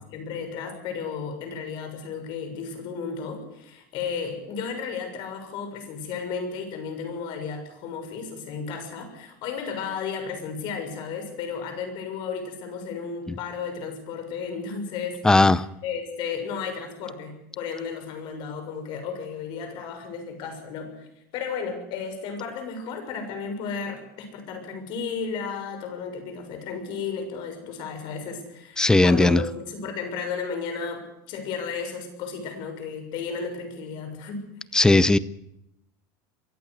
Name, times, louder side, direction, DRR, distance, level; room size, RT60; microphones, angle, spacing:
voice 1, 0.1-15.2 15.8-21.1 21.3-34.4, left 5 dB, 55° left, 6 dB, 6.7 m, -33 dB
voice 2, 15.2-15.6 28.8-29.4 34.7-35.2, left 2 dB, 5° left, 18 dB, 0.7 m, -17 dB
23.5 x 14.5 x 8.1 m, 0.80 s
supercardioid pair, 140°, 10 cm